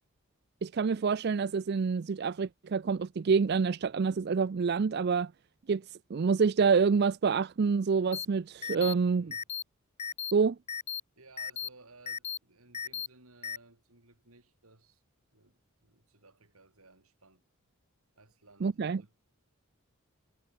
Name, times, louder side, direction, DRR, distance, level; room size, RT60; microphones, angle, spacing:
voice 1, 0.6-5.3 5.7-9.3 10.3-10.6 18.6-19.0, right 5 dB, 50° right, 0.4 m, -27 dB
sound 1, 8.1-8.3 8.6-8.9 9.3-9.6 10.0-10.3 10.7-11.0 11.4-11.7 12.1-12.4 12.7-13.1 13.4-13.6, left 8 dB, 30° left, 0.9 m, -36 dB
voice 2, 9.1-9.5 11.2-15.0 15.3-17.5 18.2-19.3, right 3 dB, 85° right, 6.2 m, -59 dB
head